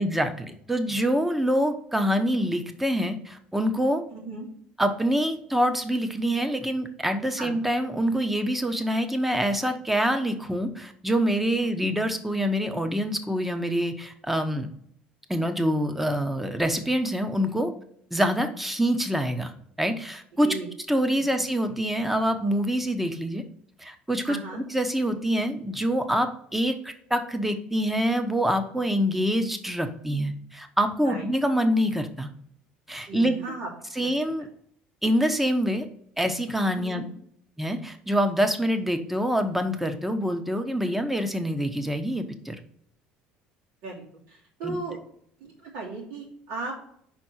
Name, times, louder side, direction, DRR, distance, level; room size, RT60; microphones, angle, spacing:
voice 1, 0.0-4.0 4.8-14.7 15.3-17.7 18.1-19.5 19.8-20.5 20.9-23.4 23.8-24.4 24.7-32.3 32.9-33.4 34.0-34.5 35.0-35.9 36.2-37.0 37.6-42.6 44.6-44.8, equal, 5° right, 7 dB, 1.0 m, -25 dB
voice 2, 4.1-4.5 7.4-7.5 20.3-20.7 21.4-21.5 24.3-24.6 31.0-31.3 33.0-33.7 33.9-34.1 36.7-37.0 43.8-45.0 45.4-46.9, right 3 dB, 75° right, -3 dB, 3.0 m, -36 dB
5.4 x 4.3 x 6.2 m, 0.66 s
supercardioid pair, 90°, 3 cm